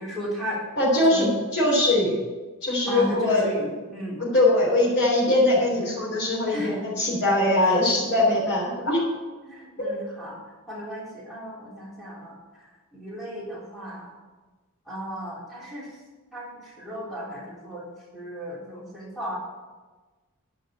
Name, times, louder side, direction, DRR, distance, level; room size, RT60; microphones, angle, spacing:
voice 1, 0.0-0.6 1.1-1.3 2.9-4.2 6.5-6.8 7.8-7.9 9.4-10.4 10.7-12.4 12.9-14.1 14.9-15.9 16.3-17.8 18.1-19.4, equal, ahead, -8 dB, 3.6 m, -34 dB
voice 2, 0.8-2.2 2.6-3.5 4.2-9.0 9.8-9.9, left 1 dB, 50° left, -8 dB, 3.7 m, -22 dB
10.5 x 5.9 x 8.4 m, 1.3 s
head